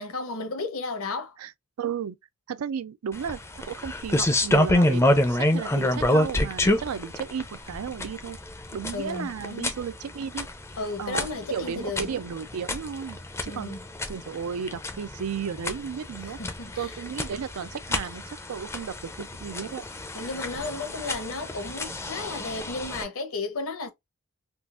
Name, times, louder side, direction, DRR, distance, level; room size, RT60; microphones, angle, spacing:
voice 1, 0.0-1.4 8.9-9.7 10.8-12.1 13.4-13.8 16.4-16.9 20.1-23.9, left 3 dB, 75° left, 0.9 m, -33 dB
voice 2, 1.8-2.2 2.5-3.4 3.7-8.4 8.7-10.5 11.0-13.8 14.1-16.4 16.8-19.8, right 7 dB, 85° right, 0.4 m, -34 dB
sound 1, 3.1-23.0, left 1 dB, 10° left, 0.4 m, -28 dB
3.7 x 2.4 x 2.4 m
head